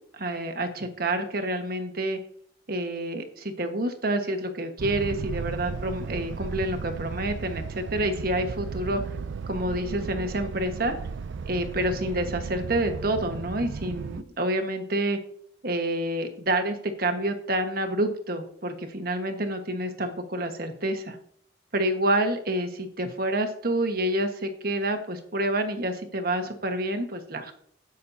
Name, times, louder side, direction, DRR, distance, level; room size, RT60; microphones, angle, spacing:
voice 1, 0.1-2.2 2.7-9.2 9.5-10.9 11.4-15.2 15.6-21.2 21.7-27.5, right 1 dB, 55° right, 6 dB, 1.4 m, -28 dB
sound 1, 4.8-14.2, right 5 dB, 80° right, 0.4 m, -35 dB
17.0 x 6.5 x 2.7 m, 0.62 s
head